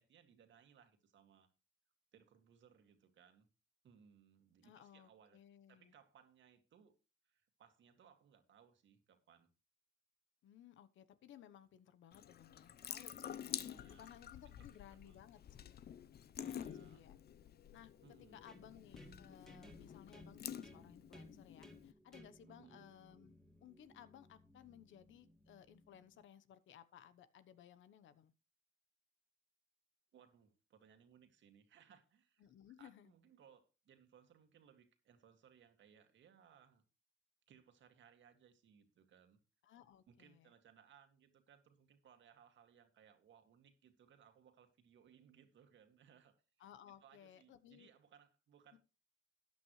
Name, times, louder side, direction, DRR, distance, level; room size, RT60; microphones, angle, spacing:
voice 1, 0.0-1.5 2.1-3.5 3.8-5.4 5.7-7.0 7.2-9.5 13.6-14.1 14.5-15.2 16.3-17.0 18.0-18.4 22.5-22.9 30.1-32.5 32.8-36.8 37.5-39.4 40.1-46.7 47.0-48.8, right 8 dB, 70° right, 2.1 m, -66 dB
voice 2, 4.6-5.9 10.4-15.7 16.5-17.2 17.7-17.9 18.3-23.4 23.6-28.3 32.4-33.1 39.6-40.5 46.6-47.9 48.7-48.8, left 10 dB, 75° left, 1.0 m, -60 dB
Water tap faucet / Sink (filling or washing) / Drip, 12.1-21.9, left 9 dB, 55° left, 0.7 m, -49 dB
sound 1, 18.5-26.2, equal, ahead, 2.3 m, -62 dB
13.5 x 9.5 x 3.2 m
cardioid pair, 90°, 20 cm